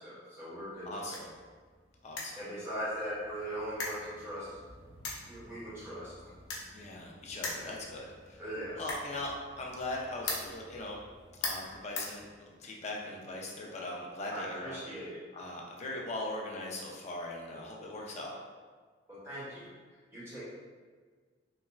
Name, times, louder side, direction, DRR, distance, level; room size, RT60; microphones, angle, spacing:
voice 1, 0.0-1.2 2.4-4.5 5.3-6.1 8.4-8.8 14.3-15.2 19.1-19.7 20.1-20.4, equal, 15° right, -10 dB, 1.0 m, -40 dB
sound 1, 0.6-12.8, left 3 dB, 90° left, 0.6 m, -43 dB
voice 2, 0.9-1.3 2.0-2.4 6.7-8.4 8.8-11.0 11.4-14.8 15.3-18.3, left 1 dB, 35° left, -1 dB, 0.4 m, -40 dB
3.1 x 2.4 x 2.2 m, 1.5 s
head